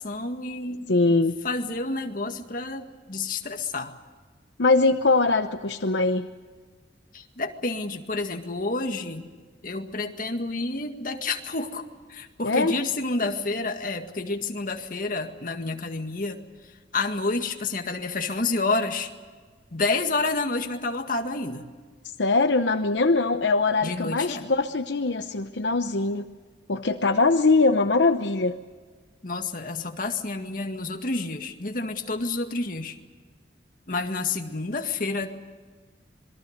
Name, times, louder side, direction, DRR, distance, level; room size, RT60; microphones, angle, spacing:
voice 1, 0.0-0.9 1.4-3.9 7.1-9.3 9.6-16.4 16.9-19.1 19.7-21.6 23.8-24.4 29.2-33.0 33.9-35.3, left 3 dB, 50° left, 5 dB, 1.9 m, -29 dB
voice 2, 0.9-1.4 4.6-6.3 12.4-12.7 22.2-26.2 26.7-28.6, left 3 dB, 75° left, 7 dB, 0.9 m, -22 dB
27.0 x 22.0 x 6.6 m, 1.5 s
head